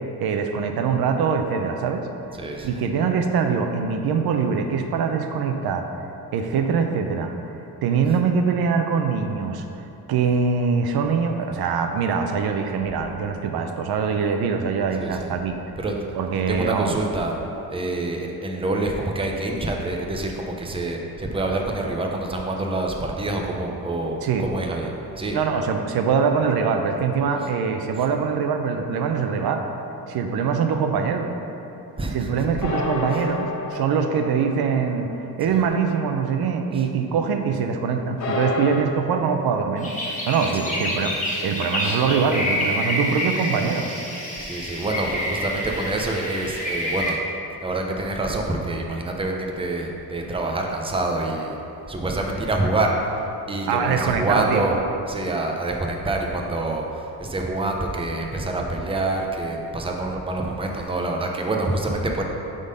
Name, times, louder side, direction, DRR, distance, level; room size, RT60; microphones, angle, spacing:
voice 1, 0.2-2.1 2.6-5.9 6.3-7.3 7.8-9.6 10.1-15.6 16.1-17.0 24.2-24.5 25.3-29.6 30.1-31.3 32.1-41.2 41.4-43.9 53.7-54.6, right 6 dB, 75° right, 5 dB, 0.6 m, -23 dB
voice 2, 2.4-2.8 15.0-15.3 15.8-15.9 16.5-17.3 17.7-25.4 32.0-32.5 33.1-33.2 35.5-35.6 36.7-36.8 40.6-40.8 44.4-47.3 47.6-51.6 51.9-53.1 53.5-54.7 55.1-62.2, right 2 dB, 15° right, 1 dB, 0.7 m, -26 dB
sound 1, 29.0-30.5 32.6-36.7 37.0-37.1 38.2-38.8, left 2 dB, 50° left, 1.1 m, -30 dB
sound 2, 39.8-47.1, left 1 dB, 20° left, 1.4 m, -28 dB
7.7 x 3.8 x 5.2 m, 3.0 s
cardioid pair, 115°, 37 cm